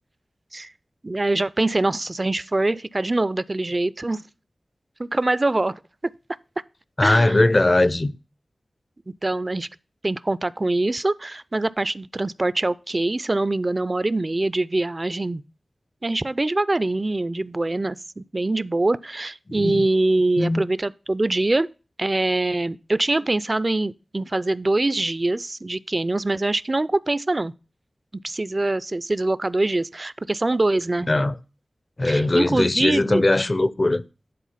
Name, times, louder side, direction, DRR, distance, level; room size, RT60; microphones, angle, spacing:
voice 1, 1.0-4.2 5.0-5.8 7.0-7.4 9.2-9.7 10.0-15.4 16.0-21.7 22.0-27.5 28.2-31.1 32.0-33.2, right 2 dB, 40° right, 0.4 m, -24 dB
voice 2, 7.0-8.1 19.5-19.8 20.4-20.6 31.1-31.3 32.0-34.0, left 2 dB, 40° left, 0.5 m, -20 dB
10.0 x 4.0 x 5.6 m
cardioid pair, 45°, 0 cm